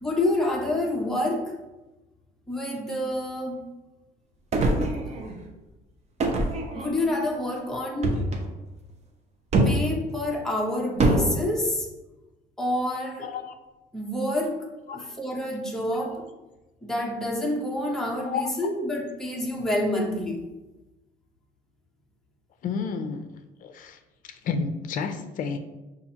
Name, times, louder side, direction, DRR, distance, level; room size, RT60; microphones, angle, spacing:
voice 1, 0.0-1.5 2.5-3.6 6.7-8.2 9.6-11.9 12.6-13.3 13.9-14.6 14.9-16.2 16.8-20.4, left 1 dB, 5° left, -1 dB, 0.8 m, -28 dB
sound 1, 4.5-5.4 6.2-7.2 8.0-8.5 9.5-9.9 11.0-11.3, right 2 dB, 40° right, 0.7 m, -23 dB
voice 2, 13.2-13.5 14.9-15.1 18.3-18.4 22.6-23.2 23.6-24.0 24.4-25.6, left 5 dB, 55° left, 8 dB, 0.5 m, -30 dB
6.8 x 2.5 x 2.8 m, 1.1 s
cardioid pair, 110°, 17 cm